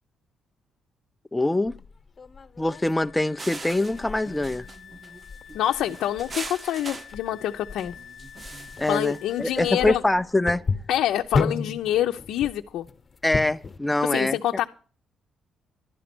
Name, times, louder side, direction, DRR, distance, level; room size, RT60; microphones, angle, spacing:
voice 1, 1.3-1.7 2.6-4.6 8.8-10.6 13.2-14.4, left 2 dB, 10° left, 0.6 m, -24 dB
sound 1, 1.7-13.8, left 4 dB, 35° left, 1.1 m, -34 dB
Wind instrument woodwind instrument, 2.7-9.8, left 9 dB, 60° left, 0.9 m, -48 dB
sound 2, 3.4-9.7, right 3 dB, 30° right, 0.8 m, -42 dB
voice 2, 5.5-7.9 8.9-10.0 10.9-12.9 14.0-14.7, left 12 dB, 80° left, 0.7 m, -26 dB
12.0 x 10.5 x 6.1 m
cardioid pair, 90°, 0 cm